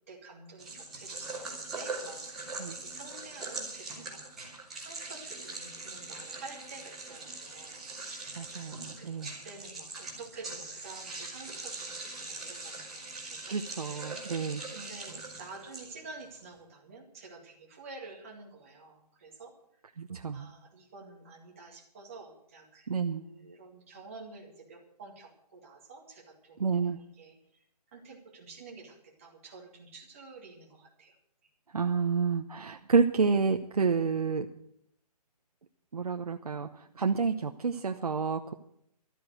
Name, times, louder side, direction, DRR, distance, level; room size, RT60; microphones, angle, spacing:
voice 1, 0.0-1.4 1.7-8.4 9.0-9.1 9.4-13.5 13.8-14.2 14.7-19.5 20.3-27.6 27.9-31.2 31.4-31.5 37.0-37.1, right 3 dB, 20° right, -1 dB, 2.1 m, -49 dB
sound 1, 0.6-16.2, right 3 dB, ahead, 0.7 m, -42 dB
voice 2, 8.4-9.3 13.5-14.6 20.0-20.5 22.9-23.2 26.6-27.0 31.7-34.5 35.9-38.5, right 5 dB, 65° right, 5 dB, 0.9 m, -29 dB
13.0 x 9.4 x 7.9 m, 0.70 s
hypercardioid pair, 180°, 21 cm